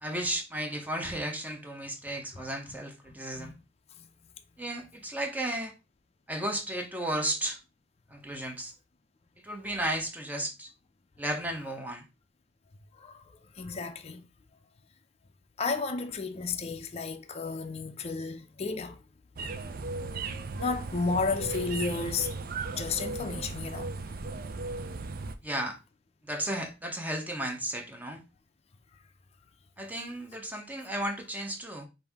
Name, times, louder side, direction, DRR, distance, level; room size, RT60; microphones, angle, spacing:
voice 1, 0.0-3.5 4.6-5.7 6.3-7.6 8.1-8.7 9.4-10.7 11.2-12.0 25.4-25.8 26.2-28.2 29.8-31.9, right 1 dB, 10° right, 0.7 m, -34 dB
voice 2, 12.9-14.2 15.6-19.0 20.2-22.4 22.7-23.9, left 4 dB, 35° left, 0.5 m, -33 dB
sound 1, 19.4-25.4, right 3 dB, 50° right, 0.4 m, -36 dB
5.3 x 2.7 x 3.4 m
head